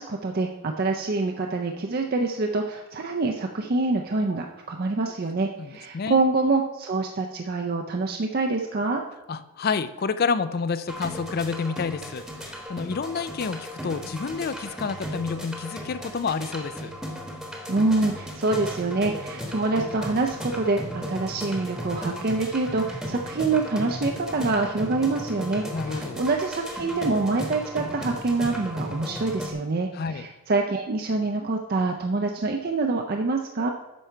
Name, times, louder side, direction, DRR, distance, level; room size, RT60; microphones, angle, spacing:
voice 1, 0.0-9.0 17.7-33.7, right 3 dB, 40° right, 2 dB, 0.5 m, -26 dB
voice 2, 5.6-6.2 9.3-16.9 25.7-26.2 29.9-30.3, left 5 dB, 45° left, 13 dB, 0.3 m, -29 dB
sound 1, 10.9-29.5, equal, ahead, 1.0 m, -36 dB
8.4 x 5.6 x 4.5 m, 1.1 s
head